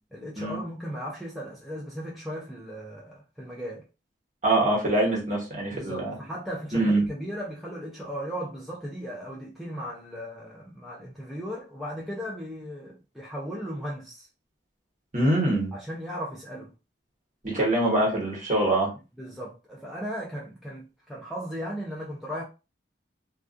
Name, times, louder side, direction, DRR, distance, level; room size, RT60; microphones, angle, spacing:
voice 1, 0.1-3.8 5.7-14.3 15.7-16.7 19.2-22.4, equal, ahead, 0.4 m, -36 dB
voice 2, 4.4-6.1 6.7-7.0 15.1-15.7 17.4-18.9, right 1 dB, 40° right, 1.1 m, -24 dB
2.3 x 2.3 x 2.5 m
head